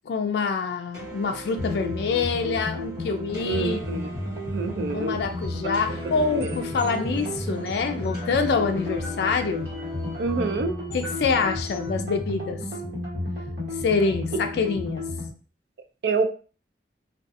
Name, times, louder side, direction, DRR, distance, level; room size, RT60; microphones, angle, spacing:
voice 1, 0.1-3.9 4.9-9.7 10.9-12.6 13.8-15.0, left 4 dB, 70° left, 6 dB, 0.3 m, -26 dB
sound 1, 0.9-10.5, right 1 dB, 20° right, 1.1 m, -42 dB
sound 2, 1.6-15.3, left 1 dB, 85° right, 1.1 m, -32 dB
voice 2, 3.4-4.1 4.5-5.2 6.4-6.6 10.2-10.7 16.0-16.3, right 4 dB, 70° right, 7 dB, 0.4 m, -27 dB
sound 3, 5.2-12.0, left 1 dB, 10° left, 0.8 m, -43 dB
2.5 x 2.3 x 2.5 m, 0.37 s
head